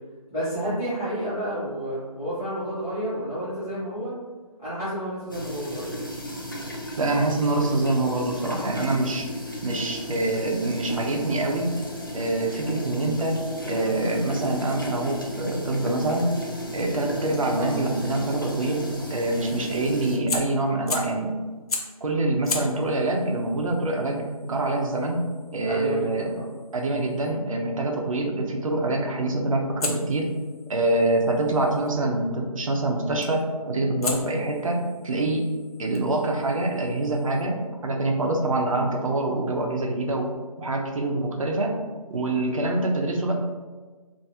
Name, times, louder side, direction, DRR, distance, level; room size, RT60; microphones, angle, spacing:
voice 1, 0.3-4.1 4.6-6.0 17.5-17.7 25.6-26.5, equal, 10° left, -20 dB, 0.7 m, -30 dB
sound 1, 5.3-20.2, equal, 35° left, 0.4 m, -35 dB
voice 2, 7.0-9.3 9.6-11.7 12.1-16.3 16.7-21.4 22.0-25.2 25.5-26.3 26.7-30.3 30.7-35.5 35.8-37.6 37.8-40.3 40.6-41.7 42.1-43.3, right 2 dB, 60° right, 2 dB, 0.6 m, -25 dB
Fire, 20.3-21.2 21.7-22.0 22.4-27.4 29.8-31.9 33.2-33.5 34.0-37.4, left 3 dB, 75° left, 0.7 m, -37 dB
3.4 x 2.6 x 2.8 m, 1.4 s
hypercardioid pair, 180°, 19 cm